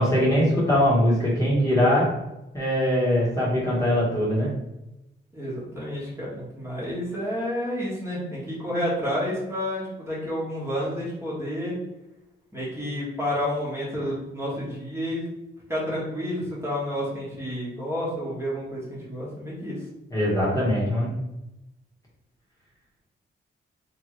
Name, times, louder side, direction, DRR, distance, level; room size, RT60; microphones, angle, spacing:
voice 1, 0.0-2.1 2.5-4.5 20.1-21.2, equal, 15° left, -8 dB, 1.4 m, -22 dB
voice 2, 5.3-11.7 12.5-15.2 15.7-19.8, equal, 10° right, -7 dB, 1.4 m, -30 dB
3.5 x 2.9 x 3.1 m, 0.93 s
cardioid pair, 110°, 20 cm